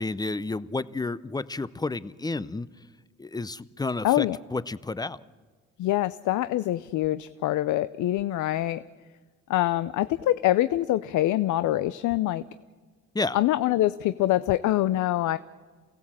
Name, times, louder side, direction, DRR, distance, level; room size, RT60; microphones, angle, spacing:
voice 1, 0.0-2.7 3.2-4.3 4.5-5.2 13.1-13.4, left 3 dB, 15° left, 16 dB, 0.6 m, -31 dB
voice 2, 4.0-4.4 5.8-8.8 9.5-12.4 13.3-15.4, left 14 dB, 80° left, 14 dB, 0.6 m, -24 dB
28.0 x 16.5 x 7.5 m, 1.4 s
cardioid pair, 90°, 30 cm